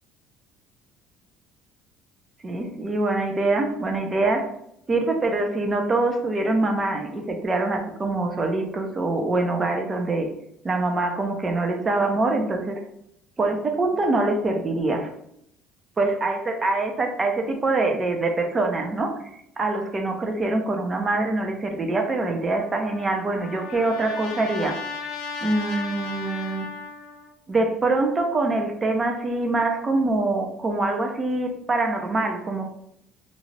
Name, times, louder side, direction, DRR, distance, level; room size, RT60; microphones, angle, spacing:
voice 1, 2.4-4.5 4.9-10.3 10.6-12.8 13.4-15.1 16.0-19.1 19.6-24.8 25.4-26.7 27.5-32.7, right 2 dB, 30° right, 4 dB, 0.6 m, -24 dB
Trumpet, 22.5-27.3, left 5 dB, 70° left, 0.5 m, -35 dB
2.6 x 2.4 x 3.1 m, 0.75 s
supercardioid pair, 90°, 0 cm